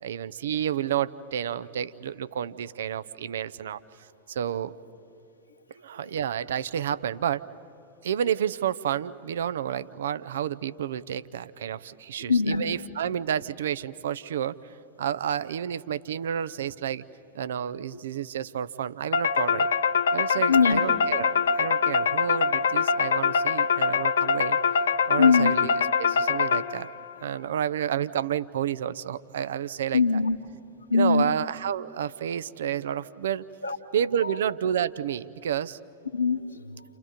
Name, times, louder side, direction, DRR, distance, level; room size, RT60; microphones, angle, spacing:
voice 1, 0.0-3.8 4.3-4.7 5.8-7.4 8.0-17.0 17.3-19.7 20.1-24.6 25.1-25.7 26.0-26.9 27.2-30.0 30.9-33.5 33.9-35.8, right 9 dB, 60° right, 14 dB, 0.7 m, -30 dB
voice 2, 12.3-12.7 17.9-18.0 20.3-20.8 25.2-25.5 29.9-30.4 30.9-31.3 33.6-33.8 34.2-34.4 36.1-36.8, left 5 dB, 85° left, 1 dB, 1.4 m, -22 dB
sound 1, 19.1-27.0, left 6 dB, 65° left, 0.9 m, -24 dB
29.5 x 29.0 x 5.1 m, 2.7 s
figure-of-eight pair, 90°, 0 cm